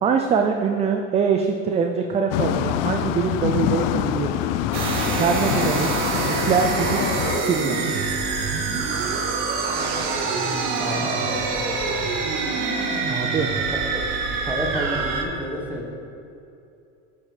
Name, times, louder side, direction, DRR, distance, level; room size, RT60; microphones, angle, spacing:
voice 1, 0.0-4.4 5.2-7.0 7.4-7.8 10.3-10.8 13.1-13.5, right 6 dB, 20° right, 4 dB, 0.4 m, -23 dB
sound 1, 2.3-7.4, left 11 dB, 80° left, 0.5 m, -25 dB
sound 2, 4.7-15.2, right 4 dB, 65° right, 1.2 m, -25 dB
voice 2, 10.8-12.2 13.7-15.9, equal, 5° right, -1 dB, 1.3 m, -31 dB
8.3 x 7.4 x 3.3 m, 2.6 s
supercardioid pair, 120°, 29 cm